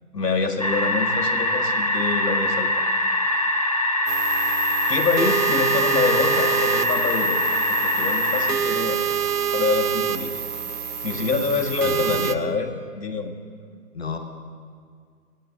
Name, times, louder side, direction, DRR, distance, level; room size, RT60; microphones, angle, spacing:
voice 1, 0.1-2.8 4.9-7.4 7.7-9.0 9.5-10.3 11.0-13.4, left 4 dB, 90° left, 3 dB, 2.1 m, -26 dB
sound 1, 0.6-8.5, left 1 dB, 25° left, 0.6 m, -23 dB
sound 2, 4.1-12.3, right 8 dB, 75° right, 1.2 m, -27 dB
voice 2, 11.8-12.4 13.9-14.2, left 5 dB, 40° left, 5 dB, 1.1 m, -32 dB
17.0 x 9.3 x 7.1 m, 2.1 s
hypercardioid pair, 160°, 47 cm